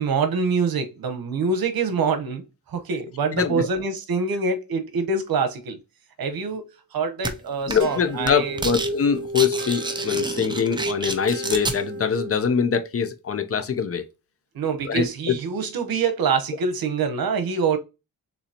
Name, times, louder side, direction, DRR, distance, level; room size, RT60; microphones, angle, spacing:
voice 1, 0.0-5.8 6.2-6.6 6.9-8.7 14.5-17.8, right 5 dB, 80° right, 1.1 m, -25 dB
voice 2, 3.3-3.7 7.7-14.0 14.8-15.4, left 7 dB, 40° left, 0.6 m, -23 dB
sound 1, 7.2-7.3 7.7-8.0 8.2-8.9 9.2-11.8, right 2 dB, 15° right, 0.5 m, -29 dB
sound 2, 7.8-12.6, right 1 dB, 55° right, 2.5 m, -32 dB
6.7 x 2.7 x 2.9 m
wide cardioid pair, 160°, 35 cm